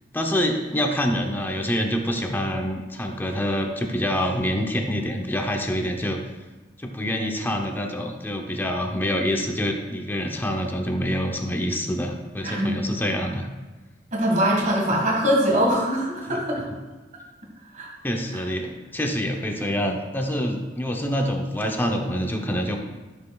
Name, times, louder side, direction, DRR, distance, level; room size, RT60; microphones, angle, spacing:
voice 1, 0.1-6.2 6.8-13.5 16.3-16.6 18.0-22.8, equal, 10° left, 2 dB, 0.7 m, -26 dB
voice 2, 12.4-12.8 14.1-16.6 17.7-17.9, equal, 45° right, -2 dB, 1.7 m, -22 dB
12.5 x 6.7 x 2.3 m, 1.2 s
head